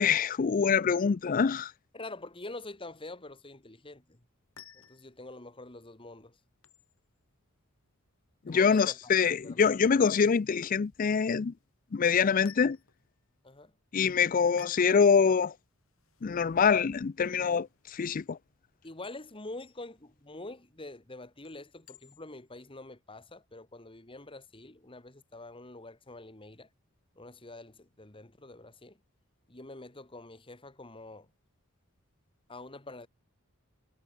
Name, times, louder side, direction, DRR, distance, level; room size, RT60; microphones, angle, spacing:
voice 1, 0.0-1.7 8.5-11.5 11.9-12.8 13.9-15.5 16.2-18.4, left 6 dB, 40° left, 0.4 m, -25 dB
voice 2, 1.9-4.2 4.7-6.4 8.5-9.7 13.4-13.7 18.8-26.7 27.2-29.0 29.5-31.3 32.5-33.1, left 2 dB, 25° left, 1.9 m, -46 dB
sound 1, 4.3-22.5, left 9 dB, 85° left, 3.5 m, -60 dB
head